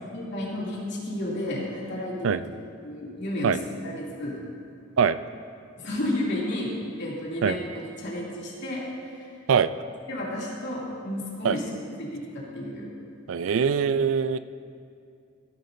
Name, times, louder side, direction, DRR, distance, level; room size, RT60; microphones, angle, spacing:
voice 1, 0.1-2.4 2.8-3.5 3.8-4.3 5.8-6.7 7.0-8.8 9.1-9.3 10.1-11.6 12.0-12.9, left 1 dB, 60° left, -6 dB, 2.7 m, -32 dB
voice 2, 13.3-14.4, right 6 dB, 85° right, 14 dB, 0.4 m, -22 dB
16.5 x 10.5 x 2.7 m, 2.4 s
head